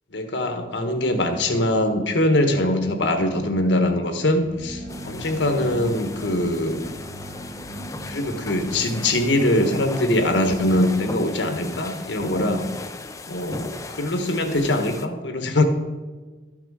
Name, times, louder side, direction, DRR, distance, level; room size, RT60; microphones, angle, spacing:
voice 1, 0.1-6.8 8.1-12.7 13.3-15.6, left 1 dB, 75° left, 6 dB, 1.3 m, -22 dB
sound 1, 4.5-12.2, equal, 50° right, 2.9 m, -40 dB
sound 2, 4.9-15.1, left 2 dB, 20° left, 0.5 m, -36 dB
13.0 x 6.0 x 4.8 m, 1.3 s
head